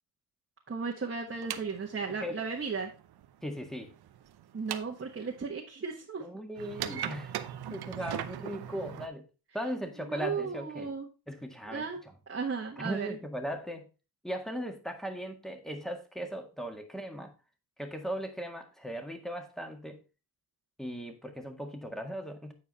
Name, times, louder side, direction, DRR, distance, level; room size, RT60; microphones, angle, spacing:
voice 1, 0.7-2.9 4.5-6.3 10.1-11.1 11.7-12.0 12.3-13.1, right 5 dB, 30° right, -1 dB, 1.4 m, -35 dB
sound 1, 1.3-5.4 6.6-9.1, right 10 dB, 70° right, 0.8 m, -40 dB
voice 2, 3.4-3.9 6.2-7.3 7.7-9.3 9.5-10.9 11.3-12.1 12.8-13.9 14.2-17.3 17.8-20.0 20.8-22.5, equal, ahead, 5 dB, 1.8 m, -38 dB
8.8 x 4.7 x 4.1 m, 0.32 s
cardioid pair, 80°, 39 cm